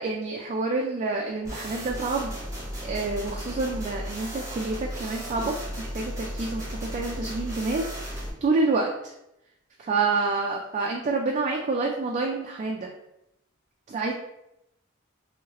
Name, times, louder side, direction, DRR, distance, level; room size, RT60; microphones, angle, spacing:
voice 1, 0.0-2.3 2.8-7.9 8.4-9.1 9.8-12.9 13.9-14.1, right 3 dB, 35° right, 0 dB, 0.3 m, -28 dB
sound 1, 1.4-8.3, equal, 15° right, 0.8 m, -35 dB
2.9 x 2.7 x 2.8 m, 0.84 s
head